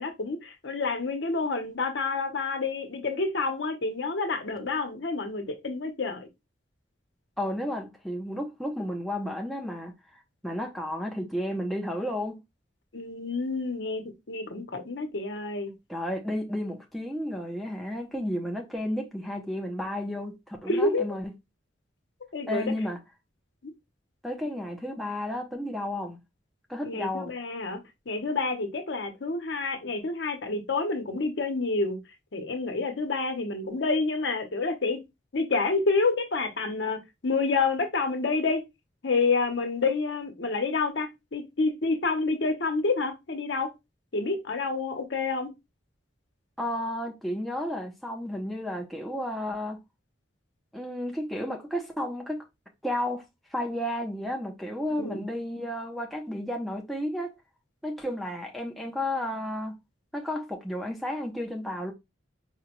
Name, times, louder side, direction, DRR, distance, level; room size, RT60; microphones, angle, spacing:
voice 1, 0.0-6.3 12.9-15.7 20.7-21.1 22.3-22.7 26.8-27.8 28.1-32.0 32.3-35.0 35.3-38.6 39.0-43.7 44.1-45.5 55.0-55.2, left 3 dB, 65° left, 0.8 m, -28 dB
voice 2, 7.4-9.9 10.4-12.4 15.9-21.3 22.5-23.0 24.2-26.2 26.7-27.3 46.6-49.8 50.7-52.4 52.8-53.2 53.5-57.4 57.8-59.7 60.1-61.9, left 1 dB, ahead, 0.4 m, -32 dB
4.8 x 2.2 x 2.9 m
head